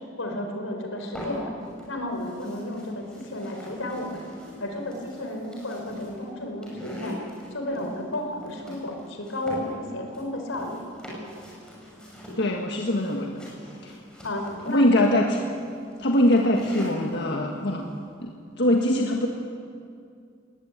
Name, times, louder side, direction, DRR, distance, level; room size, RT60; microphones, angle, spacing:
voice 1, 0.2-1.5 1.9-4.2 4.6-7.2 7.5-10.8 14.2-15.1, left 1 dB, 90° left, 3 dB, 4.6 m, -32 dB
sound 1, 1.0-1.8 2.1-17.1, left 1 dB, 5° left, 6.8 m, -42 dB
voice 2, 12.4-13.4 13.8-13.9 14.7-15.4 16.0-17.8 18.2-19.3, left 1 dB, 60° left, 1 dB, 1.7 m, -22 dB
21.0 x 18.5 x 9.4 m, 2.4 s
head